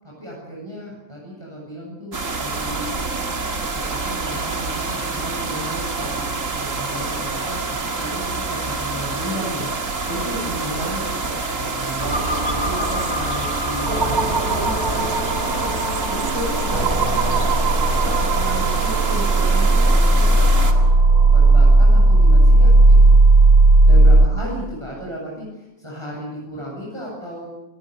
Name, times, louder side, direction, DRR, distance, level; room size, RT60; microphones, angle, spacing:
voice 1, 0.0-2.9 3.7-12.1 12.5-15.7 16.1-17.3 18.0-21.0 21.3-23.2 23.8-27.4, equal, 15° right, -4 dB, 7.7 m, -34 dB
sound 1, 2.1-20.7, right 3 dB, 55° right, 2.5 m, -27 dB
sound 2, 12.0-24.3, right 2 dB, 40° right, 3.3 m, -15 dB
27.5 x 19.0 x 6.8 m, 0.99 s
omnidirectional pair, 1.6 m